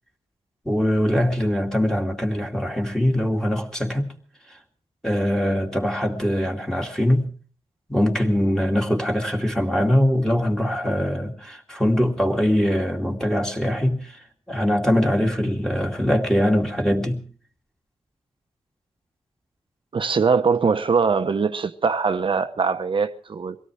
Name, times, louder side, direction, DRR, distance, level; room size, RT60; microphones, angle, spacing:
voice 1, 0.7-4.1 4.5-4.6 5.0-7.3 7.9-17.2, equal, 5° left, 2.4 m, -22 dB
voice 2, 19.9-23.6, right 5 dB, 50° right, 0.9 m, -22 dB
24.0 x 17.5 x 3.4 m
wide cardioid pair, 120°, 11 cm